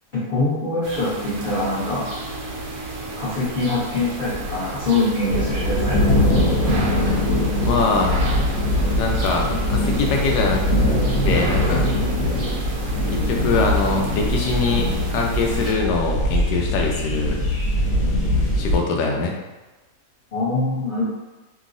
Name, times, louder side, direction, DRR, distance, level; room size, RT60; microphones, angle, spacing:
voice 1, 0.1-2.0 3.2-6.1 20.3-21.0, left 2 dB, 40° left, -11 dB, 0.8 m, -23 dB
sound 1, 0.8-15.7, right 2 dB, 70° right, 0.6 m, -32 dB
sound 2, 5.3-18.8, left 1 dB, 60° left, 1.3 m, -22 dB
voice 2, 7.5-8.1 9.0-10.7 11.2-11.8 13.1-17.4 18.6-19.4, left 4 dB, 85° left, 1 dB, 1.2 m, -23 dB
2.9 x 2.6 x 2.5 m, 1.1 s
omnidirectional pair, 1.7 m